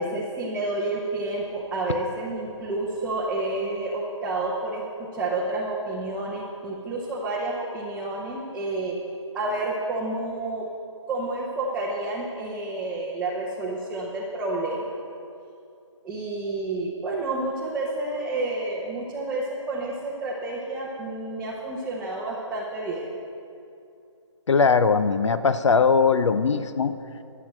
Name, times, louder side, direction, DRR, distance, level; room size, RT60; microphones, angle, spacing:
voice 1, 0.0-9.0 9.3-10.7 11.1-15.0 16.0-23.1, right 2 dB, 5° right, -6 dB, 0.7 m, -29 dB
voice 2, 24.5-26.9, left 5 dB, 65° left, 12 dB, 0.6 m, -20 dB
13.0 x 7.7 x 7.4 m, 2.6 s
figure-of-eight pair, 160°, 16 cm